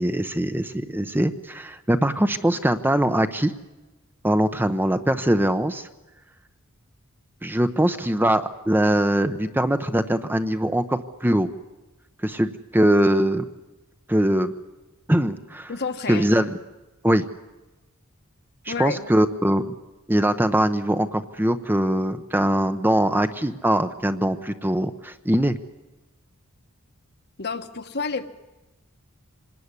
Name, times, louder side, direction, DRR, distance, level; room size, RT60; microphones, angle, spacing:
voice 1, 0.0-3.5 4.2-5.9 7.4-11.5 12.2-13.4 14.1-14.5 15.1-15.7 16.1-16.5 17.0-17.3 18.7-19.7 20.1-25.6, right 1 dB, 10° right, 9 dB, 0.8 m, -22 dB
voice 2, 15.7-16.3 18.7-19.1 27.4-28.3, left 4 dB, 50° left, 8 dB, 1.4 m, -29 dB
26.0 x 19.5 x 9.8 m, 1.1 s
head